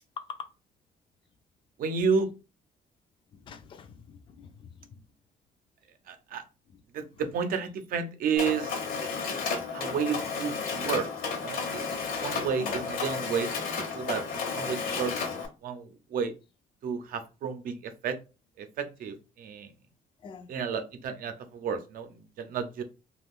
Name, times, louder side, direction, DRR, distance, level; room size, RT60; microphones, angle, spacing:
voice 1, 1.8-2.3 6.1-6.4 6.9-8.8 9.2-13.6 13.9-14.2 14.5-16.3 16.8-18.2 18.6-19.7 20.5-22.8, right 6 dB, 70° right, 0.6 m, -32 dB
voice 2, 3.3-5.0 12.6-12.7 20.2-20.5, left 5 dB, 35° left, 0.4 m, -47 dB
Mechanisms, 8.4-15.5, left 5 dB, 70° left, 0.9 m, -32 dB
2.4 x 2.3 x 3.5 m
cardioid pair, 140°, 15 cm